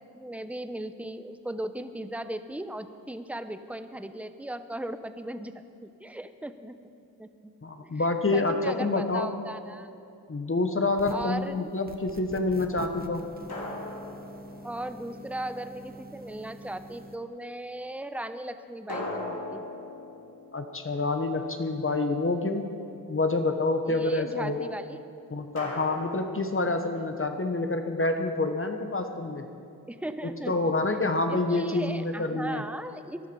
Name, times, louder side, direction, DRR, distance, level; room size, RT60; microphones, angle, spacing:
voice 1, 0.1-6.8 7.2-7.5 7.8-9.9 11.1-11.7 14.6-19.6 23.9-25.0 29.9-30.7 31.3-33.3, right 1 dB, 5° right, 10 dB, 0.8 m, -37 dB
voice 2, 7.6-9.3 10.3-13.2 20.5-22.7 23.1-24.7 25.3-29.5 30.2-32.6, left 2 dB, 35° left, 6 dB, 1.3 m, -27 dB
sound 1, 10.9-11.4 13.5-15.3 18.9-21.5 25.6-27.2, left 2 dB, 90° left, 3.0 m, -39 dB
sound 2, 10.9-11.4 11.9-17.1, right 2 dB, 25° right, 1.3 m, -45 dB
18.5 x 11.5 x 5.4 m, 2.6 s
cardioid pair, 50°, 36 cm